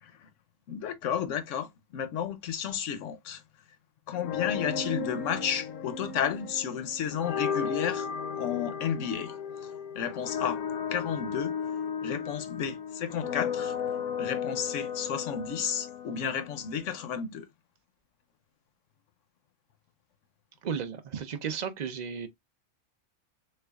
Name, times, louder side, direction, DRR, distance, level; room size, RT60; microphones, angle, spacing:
voice 1, 0.7-3.4 4.1-8.1 8.4-10.6 10.9-11.5 12.0-13.7 14.2-17.5, left 8 dB, 65° left, 0.9 m, -32 dB
sound 1, 4.1-17.1, left 7 dB, 90° left, 1.2 m, -35 dB
voice 2, 20.6-22.3, right 7 dB, 80° right, 0.4 m, -34 dB
6.5 x 2.4 x 2.3 m
omnidirectional pair, 1.5 m